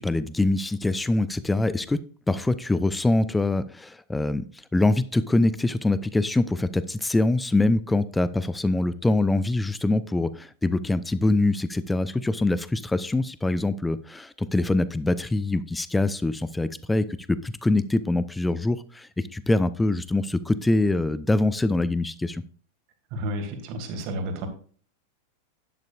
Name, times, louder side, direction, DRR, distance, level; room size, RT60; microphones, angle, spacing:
voice 1, 0.0-2.0 2.3-4.4 4.7-22.4, left 2 dB, 5° left, 16 dB, 0.5 m, -24 dB
voice 2, 23.1-24.5, right 1 dB, 45° right, 5 dB, 2.4 m, -31 dB
11.5 x 10.5 x 2.4 m, 0.43 s
figure-of-eight pair, 90°, 0 cm